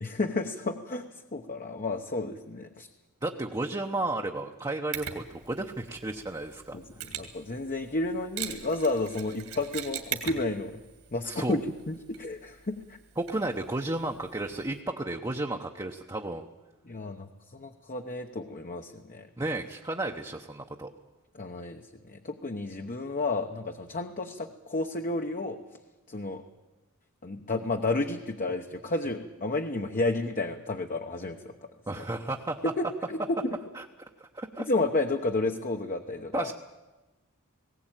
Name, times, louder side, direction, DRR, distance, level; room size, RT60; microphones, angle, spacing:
voice 1, 0.0-1.0 1.3-2.9 6.7-10.7 11.1-11.6 11.9-12.8 16.9-17.3 17.5-19.3 21.4-25.6 26.1-26.4 27.2-31.4 32.8-32.9 33.1-33.4 34.7-36.5, left 2 dB, 40° left, 4 dB, 1.0 m, -31 dB
voice 2, 3.2-6.8 11.2-11.6 13.2-16.4 19.4-20.9 31.9-32.6 33.7-33.9 34.2-34.7 36.3-36.5, right 2 dB, 15° right, 2 dB, 0.9 m, -33 dB
Mechanisms, 4.9-14.8, right 9 dB, 65° right, 2.4 m, -42 dB
19.5 x 17.0 x 9.0 m, 1.2 s
head